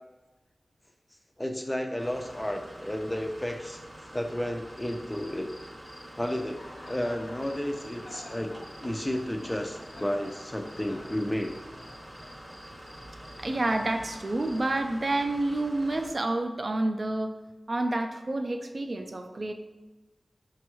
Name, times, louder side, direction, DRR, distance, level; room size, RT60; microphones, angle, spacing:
voice 1, 1.4-3.8 4.1-5.5 6.2-8.5 8.8-11.6, left 1 dB, 15° left, 5 dB, 0.4 m, -32 dB
sound 1, 2.0-16.1, equal, 20° right, 0.7 m, -46 dB
Cricket, 4.7-14.7, left 1 dB, 70° left, 0.7 m, -51 dB
voice 2, 13.4-17.3 17.7-19.5, right 2 dB, 50° right, 6 dB, 0.4 m, -29 dB
5.1 x 2.3 x 3.0 m, 1.1 s
wide cardioid pair, 70°, 0 cm